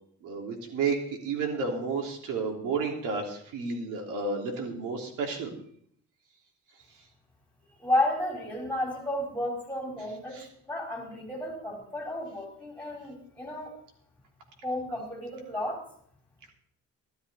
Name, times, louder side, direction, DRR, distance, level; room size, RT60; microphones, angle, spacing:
voice 1, 0.2-1.0 1.2-5.5 10.3-10.4, right 4 dB, 90° right, 2 dB, 3.2 m, -31 dB
voice 2, 7.8-10.4 10.7-13.7 14.6-15.8, left 1 dB, 5° left, 0 dB, 4.1 m, -32 dB
13.0 x 13.0 x 4.2 m, 0.64 s
cardioid pair, 145°, 30 cm